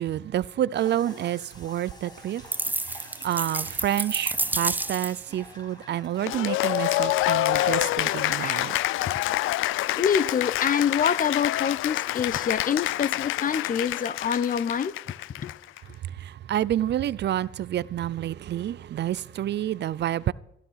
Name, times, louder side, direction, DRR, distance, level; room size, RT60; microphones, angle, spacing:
voice 1, 0.0-8.8 15.8-20.3, right 11 dB, 60° right, 0.6 m, -29 dB
sound 1, 0.7-9.7, left 1 dB, 20° left, 3.6 m, -50 dB
sound 2, 2.5-5.3, right 2 dB, 10° right, 0.4 m, -29 dB
Cheering / Applause, 6.2-15.8, left 16 dB, 85° left, 0.5 m, -27 dB
voice 2, 8.4-8.8 9.1-9.2 10.0-14.9 15.4-15.5, left 7 dB, 45° left, 0.8 m, -26 dB
15.0 x 12.0 x 5.7 m
cardioid pair, 90°, 20 cm